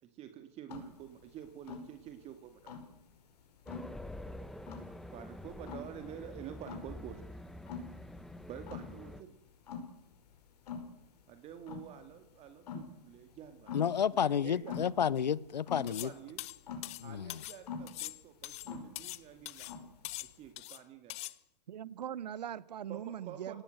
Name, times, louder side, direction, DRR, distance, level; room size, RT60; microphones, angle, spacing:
voice 1, 0.0-2.8 5.1-7.2 8.5-9.3 11.3-14.8 15.9-16.4 17.0-19.7 20.2-21.2 22.9-23.6, right 10 dB, 30° right, 2.2 m, -49 dB
sound 1, 0.7-20.5, left 5 dB, 70° left, 5.4 m, -46 dB
Race car auto racing, 3.7-9.2, left 1 dB, ahead, 1.2 m, -47 dB
voice 2, 13.7-16.1 17.0-17.4, left 8 dB, 90° left, 0.7 m, -31 dB
sound 2, 15.9-16.1 16.4-17.6 17.9-19.2 19.5-19.8 20.0-20.8 21.1-21.3, left 18 dB, 30° left, 0.9 m, -43 dB
voice 3, 21.7-23.6, right 10 dB, 80° right, 0.9 m, -41 dB
24.5 x 18.0 x 7.8 m
hypercardioid pair, 125°, 21 cm